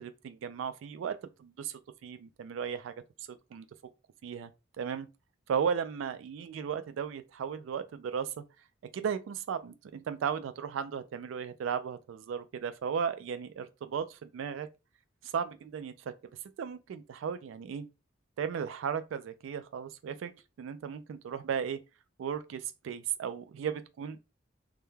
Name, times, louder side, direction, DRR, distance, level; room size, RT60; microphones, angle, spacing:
voice 1, 0.0-2.9 3.3-3.7 4.2-4.5 4.8-5.1 5.5-8.4 8.9-14.7 15.2-16.1 16.6-17.8 18.4-20.3 20.6-21.8 22.2-24.2, right 7 dB, 75° right, 0.3 m, -35 dB
2.3 x 2.1 x 3.0 m
head